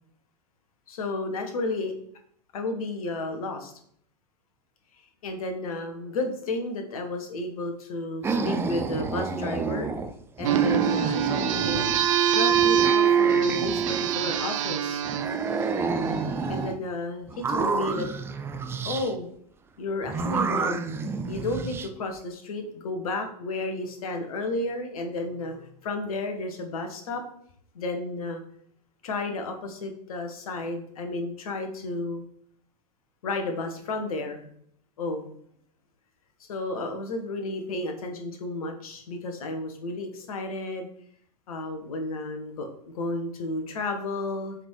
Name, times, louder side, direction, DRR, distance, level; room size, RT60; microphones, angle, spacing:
voice 1, 0.9-1.9 2.5-3.7 5.2-9.9 10.4-11.9 12.3-15.0 16.5-18.1 18.8-19.3 19.8-20.9 21.3-27.2 27.7-28.4 29.0-32.2 33.2-34.5 35.0-35.3 36.4-40.9 41.5-44.6, left 2 dB, 60° left, 5 dB, 1.5 m, -32 dB
sound 1, 8.2-10.1 10.4-12.1 12.5-14.5 15.0-16.8 17.3-19.1 20.0-21.9, right 4 dB, 10° right, 0.5 m, -30 dB
sound 2, 10.4-16.5, right 8 dB, 50° right, 0.7 m, -24 dB
7.8 x 3.8 x 4.6 m, 0.64 s
figure-of-eight pair, 95°, 21 cm